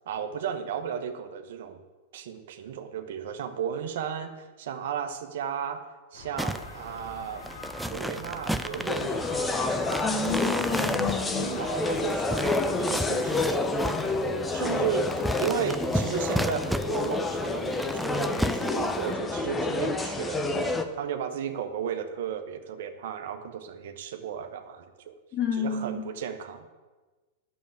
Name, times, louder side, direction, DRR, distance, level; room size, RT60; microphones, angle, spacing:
voice 1, 0.1-1.8 2.1-7.5 7.8-10.2 11.4-13.7 14.0-14.2 14.5-15.1 15.4-20.6 21.0-25.1 25.5-26.7, right 8 dB, 65° right, 7 dB, 1.1 m, -34 dB
sound 1, 6.1-12.8, left 1 dB, 80° left, 3.9 m, -45 dB
sound 2, 6.4-19.1, equal, ahead, 0.5 m, -34 dB
sound 3, 8.9-20.8, left 3 dB, 15° left, 1.0 m, -29 dB
voice 2, 10.0-11.5 25.3-26.0, left 5 dB, 35° left, 1 dB, 2.7 m, -30 dB
9.5 x 7.1 x 8.4 m, 1.3 s
hypercardioid pair, 100°, 0 cm